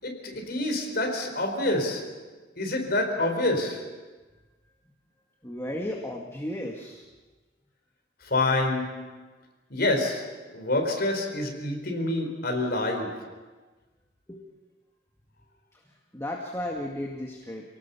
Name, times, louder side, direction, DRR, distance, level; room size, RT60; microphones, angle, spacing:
voice 1, 0.0-4.0 8.2-9.3 9.7-13.4, left 2 dB, 55° left, 3 dB, 4.5 m, -28 dB
voice 2, 5.4-7.0 14.3-14.4 15.7-15.8 16.1-17.6, left 1 dB, 15° left, 0 dB, 2.0 m, -34 dB
28.5 x 18.5 x 7.0 m, 1.3 s
head